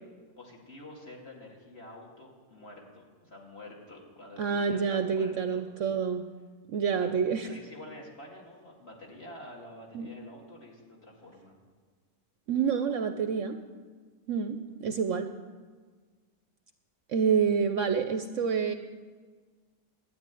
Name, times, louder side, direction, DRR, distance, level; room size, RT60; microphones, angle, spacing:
voice 1, 0.4-5.6 6.9-11.5, left 1 dB, 40° left, -2 dB, 2.6 m, -48 dB
voice 2, 4.4-6.2 6.7-7.5 9.9-10.1 12.5-13.6 14.3-15.3 17.1-18.7, right 6 dB, 65° right, 8 dB, 0.9 m, -28 dB
12.0 x 8.7 x 9.2 m, 1.5 s
omnidirectional pair, 1.6 m